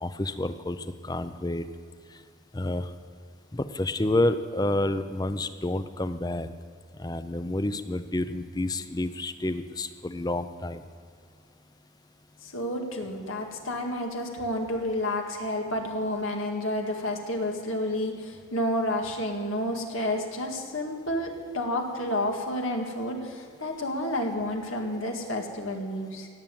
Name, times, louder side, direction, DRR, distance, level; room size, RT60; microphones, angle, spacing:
voice 1, 0.0-1.6 2.5-2.9 3.5-6.5 7.0-10.8, left 1 dB, 20° left, 11 dB, 0.6 m, -29 dB
voice 2, 12.4-26.3, left 1 dB, 85° left, 2 dB, 1.9 m, -30 dB
17.5 x 7.4 x 9.2 m, 2.2 s
head